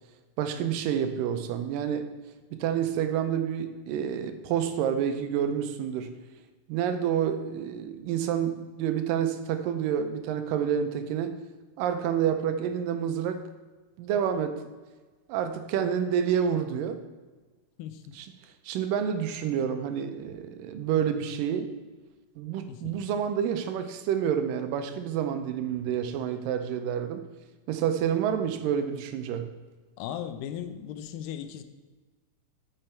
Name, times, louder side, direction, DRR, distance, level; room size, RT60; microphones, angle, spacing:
voice 1, 0.4-2.1 2.5-6.1 6.7-11.4 11.8-13.4 14.0-14.6 15.3-17.0 18.2-18.3 18.7-21.7 22.4-27.3 27.7-29.5, right 8 dB, 90° right, 8 dB, 2.3 m, -28 dB
voice 2, 22.6-23.0 30.0-31.6, left 9 dB, 90° left, 9 dB, 2.4 m, -37 dB
8.9 x 6.7 x 4.5 m, 1.3 s
omnidirectional pair, 3.9 m